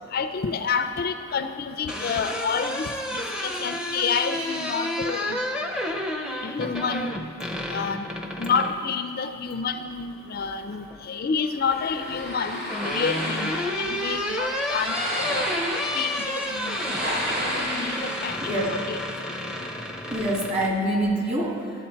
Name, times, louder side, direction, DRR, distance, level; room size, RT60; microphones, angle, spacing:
voice 1, 0.1-5.4 6.4-7.1 7.7-8.1 8.4-15.5 15.9-19.0, left 5 dB, 45° left, 9 dB, 0.4 m, -29 dB
sound 1, 1.6-8.8 10.3-11.0 12.2-20.7, left 1 dB, 5° right, 0.6 m, -31 dB
sound 2, 11.7-18.3, equal, 50° right, 2.1 m, -32 dB
voice 2, 20.1-21.6, right 1 dB, 30° right, -1 dB, 1.6 m, -26 dB
12.0 x 8.5 x 4.4 m, 2.3 s
head